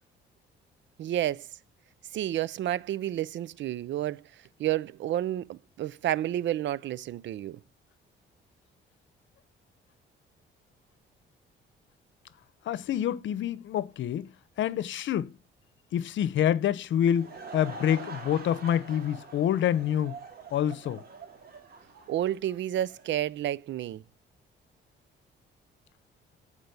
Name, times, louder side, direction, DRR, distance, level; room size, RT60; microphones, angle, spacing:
voice 1, 1.0-1.5 2.1-4.2 4.6-7.6 22.1-24.0, right 12 dB, 65° right, 0.5 m, -30 dB
voice 2, 12.7-14.3 14.6-15.3 15.9-20.2 20.5-21.0, left 10 dB, 70° left, 0.8 m, -27 dB
Laughter / Crowd, 16.8-23.2, right 4 dB, 50° right, 3.0 m, -45 dB
14.5 x 5.3 x 6.9 m
cardioid pair, 90°, 20 cm